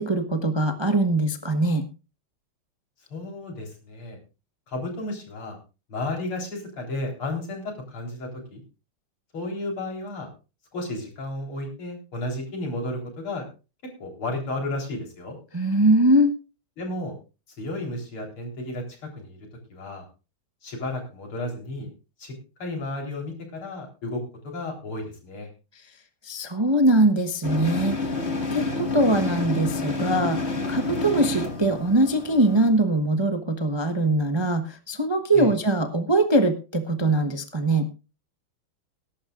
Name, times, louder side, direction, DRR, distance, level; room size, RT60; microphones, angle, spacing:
voice 1, 0.0-1.8 15.5-16.3 26.2-28.0 28.5-30.4 30.7-37.9, right 1 dB, 20° right, 6 dB, 0.7 m, -22 dB
voice 2, 3.1-4.2 4.7-5.6 5.9-8.6 9.3-10.3 10.7-13.5 14.0-15.4 16.8-17.1 17.6-19.4 19.7-20.1 20.6-21.9 22.2-22.3 22.6-25.5 35.3-35.5, left 2 dB, 85° left, 1 dB, 4.9 m, -33 dB
sound 1, 27.4-32.7, left 3 dB, 30° left, 2.0 m, -29 dB
20.0 x 11.5 x 2.5 m, 0.31 s
omnidirectional pair, 2.3 m